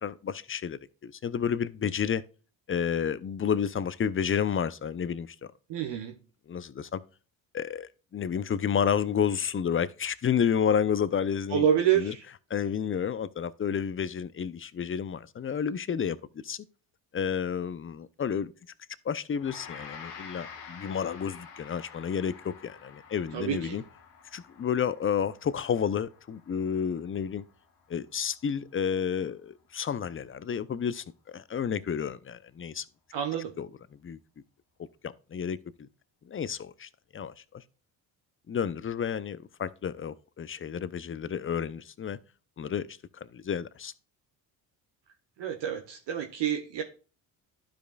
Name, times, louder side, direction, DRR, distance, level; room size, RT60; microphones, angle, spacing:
voice 1, 0.0-2.2 2.7-5.4 6.5-7.0 7.5-11.7 11.9-12.1 12.5-16.6 17.1-18.5 19.0-23.8 24.3-27.4 27.9-32.8 33.6-33.7 34.0-34.2 35.0-35.9 36.2-37.6 38.5-42.2 42.6-43.9, left 7 dB, 25° left, 0.6 m, -31 dB
voice 2, 5.7-6.1 11.5-12.2 23.3-23.8 33.1-33.5 45.4-46.8, right 9 dB, 65° right, 1.2 m, -28 dB
Gong, 19.4-28.7, left 6 dB, 90° left, 1.6 m, -49 dB
12.0 x 5.1 x 2.4 m
hypercardioid pair, 55°, 47 cm